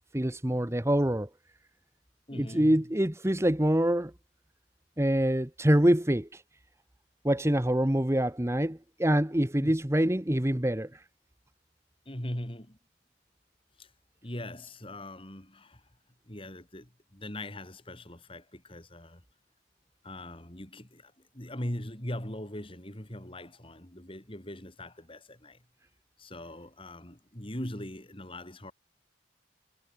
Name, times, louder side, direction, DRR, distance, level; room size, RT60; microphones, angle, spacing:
voice 1, 0.1-1.3 2.3-4.1 5.0-6.4 7.2-11.0, right 1 dB, 15° right, 1.1 m, -25 dB
voice 2, 2.3-2.9 9.6-9.7 12.1-12.8 13.8-13.9 14.2-15.8 16.3-19.2 20.0-25.6 26.2-28.7, left 1 dB, 30° left, 3.6 m, -41 dB
head